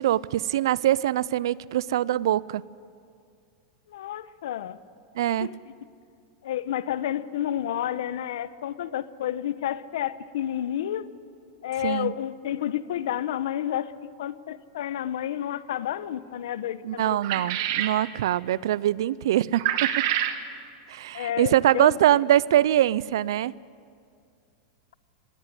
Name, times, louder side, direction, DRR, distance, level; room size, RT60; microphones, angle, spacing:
voice 1, 0.0-2.6 5.2-5.5 11.8-12.1 16.8-19.9 20.9-23.5, right 12 dB, 75° right, 22 dB, 0.5 m, -23 dB
voice 2, 3.9-4.8 5.4-5.6 6.4-11.1 11.6-13.9 14.2-17.5 21.1-22.0, left 11 dB, 80° left, 15 dB, 0.9 m, -30 dB
sound 1, 17.2-18.0 19.5-20.4, right 11 dB, 50° right, 1.3 m, -26 dB
20.5 x 16.5 x 9.8 m, 2.3 s
supercardioid pair, 175°, 2 cm